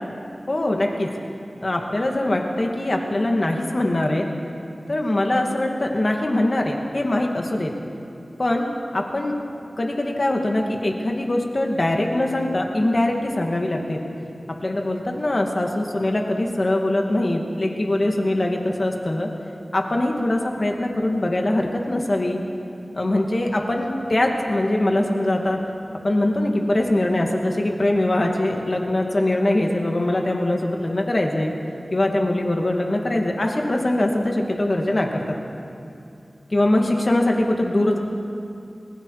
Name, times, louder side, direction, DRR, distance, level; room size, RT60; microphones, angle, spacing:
voice 1, 0.5-1.1 1.6-4.2 4.9-7.7 8.4-8.7 8.9-9.3 9.8-14.0 14.5-19.3 19.7-22.4 22.9-25.6 26.0-31.6 31.9-35.4 36.5-38.0, left 1 dB, 50° left, 1 dB, 2.5 m, -22 dB
27.5 x 21.0 x 5.0 m, 2.5 s
wide cardioid pair, 55°, 0 cm